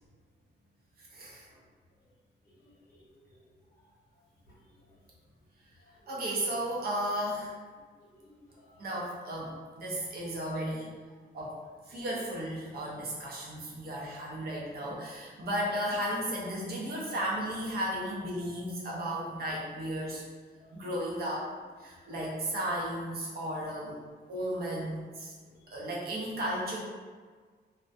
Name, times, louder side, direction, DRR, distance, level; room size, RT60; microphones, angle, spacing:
voice 1, 1.0-1.5 6.1-7.5 8.8-10.9 11.3-11.5 11.9-20.2 20.7-21.5 21.8-24.0 24.3-25.3 25.7-26.8, right 1 dB, 60° right, -4 dB, 0.7 m, -34 dB
voice 2, 2.6-3.0 5.8-6.1 8.0-8.8 11.3-11.4 11.9-12.1 13.9-14.2 20.1-20.2 20.6-20.7 22.0-22.1, left 1 dB, 55° left, -8 dB, 0.8 m, -60 dB
2.2 x 2.2 x 2.5 m, 1.5 s
wide cardioid pair, 180°, 18 cm